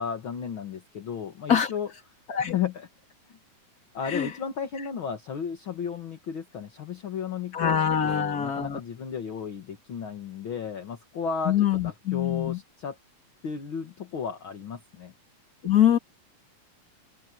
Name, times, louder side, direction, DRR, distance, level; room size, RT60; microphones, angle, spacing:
voice 1, 0.0-1.9 2.4-2.9 3.3-3.4 3.9-13.0 13.4-15.1, left 7 dB, 45° left, 1.7 m, -34 dB
voice 2, 7.5-8.8 11.5-12.6 15.6-16.0, left 9 dB, 30° left, 2.3 m, -24 dB
omnidirectional pair, 4.4 m